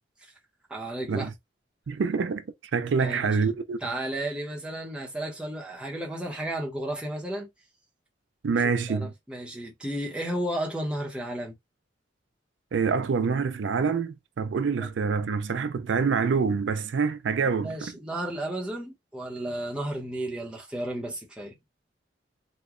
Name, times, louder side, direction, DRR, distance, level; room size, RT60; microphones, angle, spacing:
voice 1, 0.7-1.3 3.0-3.4 3.8-7.5 8.9-11.6 17.6-21.5, right 1 dB, 5° right, 0.8 m, -33 dB
voice 2, 1.9-2.4 2.7-3.8 8.4-9.1 12.7-17.9, right 5 dB, 80° right, 0.4 m, -26 dB
3.0 x 2.2 x 3.6 m
head